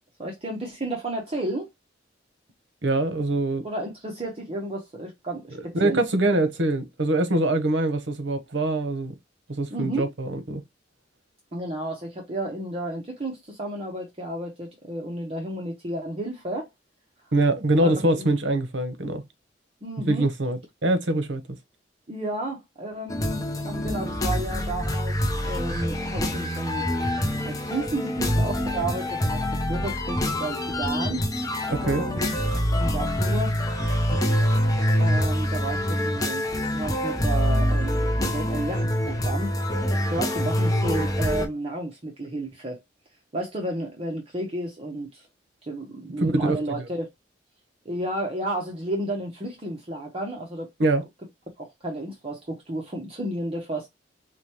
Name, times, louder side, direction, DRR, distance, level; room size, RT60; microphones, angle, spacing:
voice 1, 0.2-1.7 3.6-6.0 9.7-10.0 11.5-16.7 17.8-18.3 19.8-20.3 22.1-26.9 27.4-31.2 31.8-32.3 32.7-33.6 35.0-36.5 36.7-39.5 40.1-42.8 43.3-45.3 45.6-47.1 47.8-50.7 51.6-53.9, right 1 dB, 35° right, 0.9 m, -32 dB
voice 2, 2.8-3.6 5.5-9.1 9.5-10.6 17.3-19.2 20.1-21.4 31.7-32.0 46.2-46.9 50.8-51.0, right 2 dB, 85° right, 0.8 m, -24 dB
sound 1, 23.1-41.5, equal, 20° left, 0.7 m, -25 dB
4.9 x 2.3 x 2.9 m
head